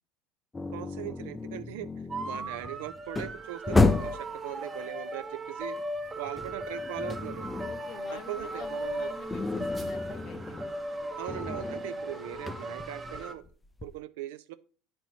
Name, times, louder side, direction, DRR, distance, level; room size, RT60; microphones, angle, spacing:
sound 1, 0.5-4.3 5.8-7.9 8.2-14.0, left 3 dB, 15° left, 0.4 m, -32 dB
voice 1, 0.7-1.9 2.2-5.8 6.1-7.5 8.1-9.1 11.2-13.4 13.8-14.5, right 14 dB, 80° right, 13 dB, 0.4 m, -40 dB
sound 2, 2.1-13.3, right 1 dB, 20° right, 0.8 m, -37 dB
voice 2, 7.6-10.6, left 4 dB, 50° left, 7 dB, 1.1 m, -47 dB
9.0 x 4.5 x 2.8 m, 0.40 s
supercardioid pair, 90°, 0 cm